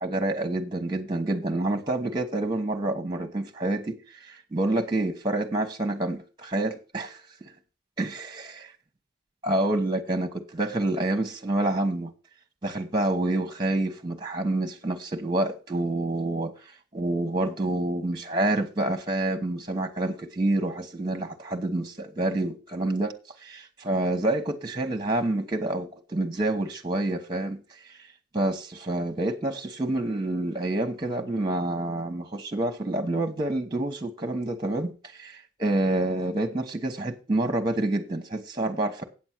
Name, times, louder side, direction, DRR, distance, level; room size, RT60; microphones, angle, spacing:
voice 1, 0.0-7.5 8.0-8.6 9.4-12.1 12.6-16.5 16.9-23.1 23.4-27.6 28.3-39.0, right 2 dB, 20° right, 1.2 m, -28 dB
8.8 x 7.2 x 6.2 m
head